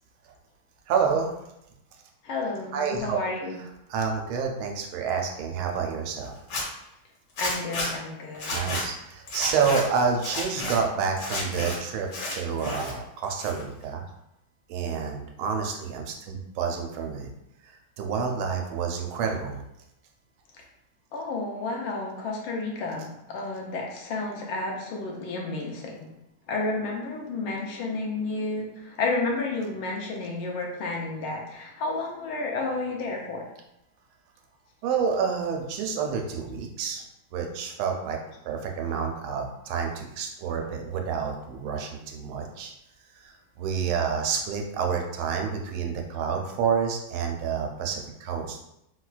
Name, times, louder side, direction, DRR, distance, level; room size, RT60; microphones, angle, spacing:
voice 1, 0.9-1.3 2.7-3.2 3.9-6.3 8.5-14.0 14.7-17.3 17.6-19.6 34.8-37.0 37.3-38.2 38.4-42.7 43.1-48.6, right 6 dB, 90° right, 2 dB, 1.4 m, -29 dB
voice 2, 2.2-3.6 7.4-8.5 21.1-26.1 26.5-33.4, left 3 dB, 80° left, 0 dB, 1.5 m, -31 dB
Zipper (clothing), 6.4-6.6 7.4-7.9 8.3-8.8 9.3-9.8 10.2-10.8 11.2-11.7 12.1-12.9 13.2-13.8, left 2 dB, 55° left, 1.3 m, -31 dB
4.3 x 2.2 x 2.3 m, 0.83 s
omnidirectional pair, 2.3 m